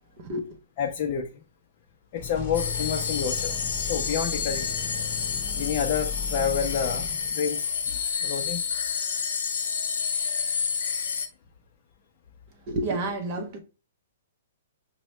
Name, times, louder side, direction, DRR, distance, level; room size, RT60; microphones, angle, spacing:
voice 1, 0.2-0.6 12.6-13.6, right 2 dB, 35° right, 0.6 m, -30 dB
voice 2, 0.8-1.3 2.1-3.5 3.8-4.7 5.3-8.6, left 7 dB, 35° left, 0.5 m, -29 dB
sound 1, 2.2-7.6, left 6 dB, 20° left, 0.9 m, -36 dB
sound 2, 2.5-11.3, left 6 dB, 80° left, 0.6 m, -29 dB
5.2 x 2.1 x 3.0 m
hypercardioid pair, 165°, 0 cm